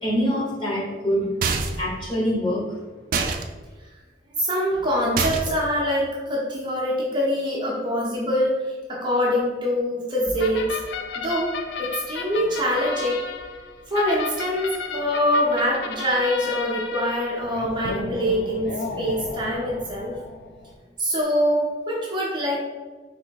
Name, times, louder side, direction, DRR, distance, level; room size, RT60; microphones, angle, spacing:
voice 1, 0.0-1.3 1.8-2.6, equal, 25° left, -6 dB, 1.4 m, -24 dB
sound 1, 1.4-1.9 3.1-3.4 5.2-5.7, right 4 dB, 50° right, 0.4 m, -25 dB
voice 2, 4.4-8.6 8.9-10.8 11.1-13.2 13.9-20.2 21.0-22.7, equal, 25° right, -5 dB, 0.7 m, -24 dB
sound 2, 10.4-20.7, left 4 dB, 65° left, 0.4 m, -33 dB
3.6 x 2.7 x 4.6 m, 1.4 s
head